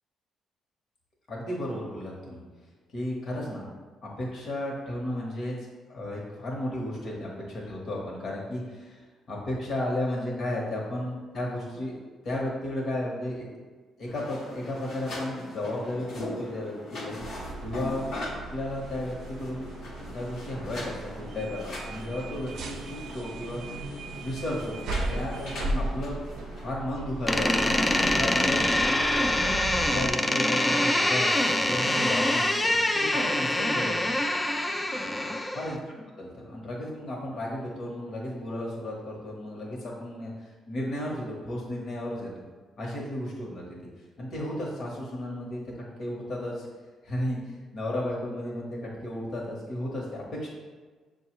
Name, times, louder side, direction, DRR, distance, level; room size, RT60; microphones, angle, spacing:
voice 1, 1.3-2.4 2.9-3.7 4.0-5.6 5.9-12.0 12.2-13.5 14.0-16.7 17.0-17.2 17.6-18.0 18.5-19.7 20.1-23.6 24.2-24.8 25.1-26.2 26.6-28.6 29.9-34.2 35.5-42.3 42.8-43.8 44.2-46.7 47.0-50.5, left 1 dB, 60° left, -3 dB, 1.0 m, -34 dB
sound 1, 14.1-26.7, left 1 dB, 75° left, 1.0 m, -40 dB
sound 2, 17.2-30.1, right 2 dB, 75° right, 0.4 m, -37 dB
Door, 27.3-35.8, left 1 dB, 15° left, 0.3 m, -25 dB
6.6 x 2.3 x 3.0 m, 1.4 s
cardioid pair, 90°, 0 cm